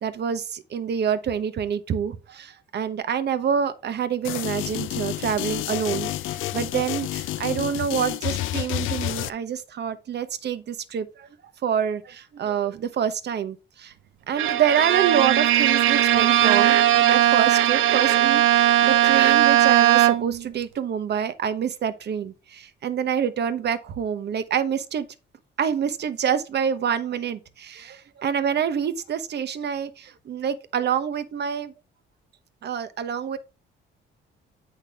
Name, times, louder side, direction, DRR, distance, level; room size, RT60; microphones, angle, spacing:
voice 1, 0.0-11.3 11.6-13.9 14.3-25.1 25.6-31.7 32.6-33.4, right 8 dB, 55° right, 1.0 m, -27 dB
sound 1, 4.2-9.3, left 15 dB, 85° left, 0.5 m, -29 dB
Bowed string instrument, 14.4-20.5, right 13 dB, 85° right, 0.5 m, -18 dB
8.5 x 5.6 x 3.5 m
cardioid pair, 90°, 20 cm